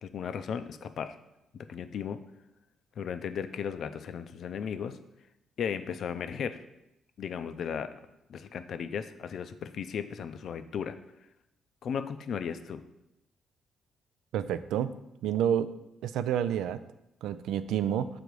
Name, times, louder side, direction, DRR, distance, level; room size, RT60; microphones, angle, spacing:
voice 1, 0.0-1.2 1.5-2.2 3.0-5.0 5.6-6.6 7.2-7.9 8.3-11.0 11.8-12.8, left 7 dB, 65° left, 10 dB, 0.4 m, -35 dB
voice 2, 14.3-14.9 15.2-15.7 16.0-16.8 17.2-18.1, right 10 dB, 90° right, 13 dB, 0.3 m, -29 dB
6.8 x 3.9 x 4.7 m, 0.86 s
cardioid pair, 90°, 0 cm